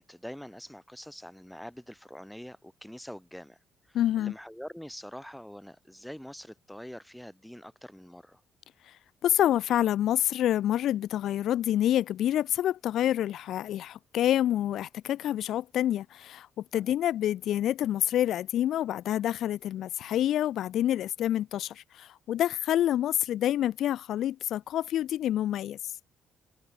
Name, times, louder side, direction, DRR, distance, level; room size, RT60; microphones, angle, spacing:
voice 1, 0.0-3.6 3.9-8.4 16.7-16.9, equal, ahead, 0.8 m, -45 dB
voice 2, 3.9-4.3 8.9-9.0 9.2-25.8, left 12 dB, 65° left, 0.4 m, -27 dB
cardioid pair, 155°, 0 cm